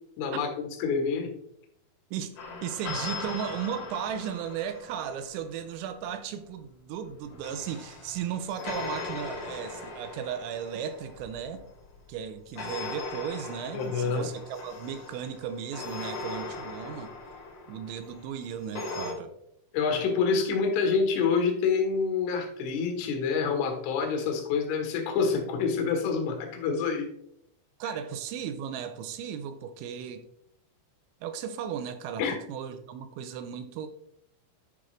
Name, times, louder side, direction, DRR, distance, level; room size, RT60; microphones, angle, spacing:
voice 1, 0.2-1.3 13.7-14.3 19.7-27.1 32.2-32.4, left 5 dB, 80° left, 3 dB, 3.7 m, -27 dB
sound 1, 2.4-5.5 7.0-12.0 12.6-19.1, left 3 dB, 60° left, 1.6 m, -39 dB
voice 2, 2.6-11.6 12.1-17.1 17.7-19.3 27.8-30.2 31.2-33.9, right 8 dB, 80° right, 9 dB, 2.9 m, -35 dB
10.5 x 5.0 x 3.2 m, 0.75 s
omnidirectional pair, 5.5 m